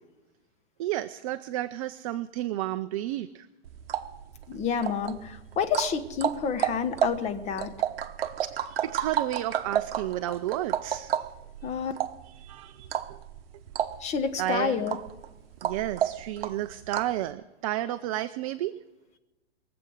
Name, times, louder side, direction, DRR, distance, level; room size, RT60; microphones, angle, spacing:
voice 1, 0.8-3.5 8.4-11.1 12.2-12.9 14.4-14.8 15.6-18.8, right 14 dB, 35° right, 12 dB, 0.4 m, -32 dB
sound 1, 3.6-17.2, right 10 dB, 60° right, 0.9 m, -32 dB
voice 2, 4.5-7.7 11.6-11.9 14.0-15.0, left 6 dB, 20° left, 9 dB, 1.0 m, -29 dB
23.0 x 7.9 x 6.3 m, 1.1 s
hypercardioid pair, 120°, 33 cm